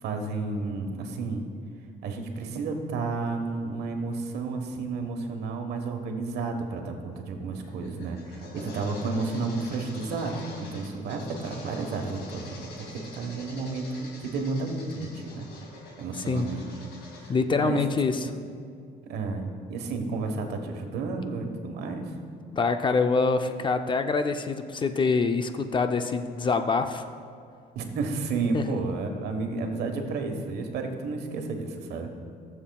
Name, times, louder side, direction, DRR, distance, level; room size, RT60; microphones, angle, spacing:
voice 1, 0.0-1.4 2.0-15.5 16.0-16.6 17.2-17.3 17.6-17.9 18.2-18.4 19.1-22.1 27.7-32.1, right 3 dB, 75° right, 4 dB, 1.3 m, -32 dB
sound 1, 7.6-17.3, left 2 dB, 85° left, 2.3 m, -45 dB
voice 2, 17.3-18.3 22.5-27.1 28.5-28.8, left 4 dB, 30° left, 8 dB, 0.5 m, -25 dB
20.5 x 7.2 x 2.3 m, 2.3 s
cardioid pair, 110°, 17 cm